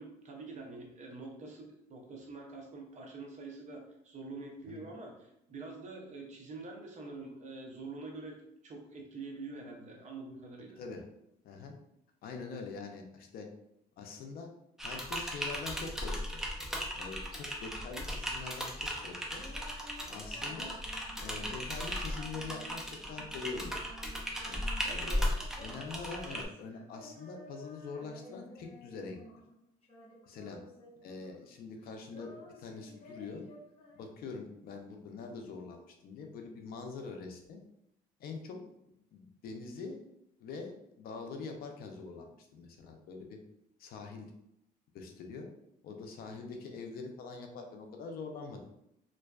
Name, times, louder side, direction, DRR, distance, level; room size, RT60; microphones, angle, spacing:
voice 1, 0.0-10.8 24.9-25.3, right 3 dB, 45° right, 1 dB, 0.6 m, -46 dB
voice 2, 12.2-13.5 14.0-14.5 14.8-16.4 17.0-18.7 19.0-19.4 20.1-20.7 21.2-22.8 23.1-23.8 24.5-24.6 24.9-25.3 25.6-29.2 30.3-30.6 31.0-33.4 33.9-37.6 38.2-38.6 38.9-40.0 40.4-43.4 43.8-44.3 44.9-45.5 45.8-48.6, left 4 dB, 65° left, 3 dB, 0.5 m, -44 dB
Typing, 14.8-26.5, equal, 5° right, 0.4 m, -37 dB
Female singing, 19.2-29.5 29.8-31.5 31.8-34.4, equal, 35° left, 0.8 m, -54 dB
2.5 x 2.2 x 2.2 m, 0.80 s
cardioid pair, 110°, 17 cm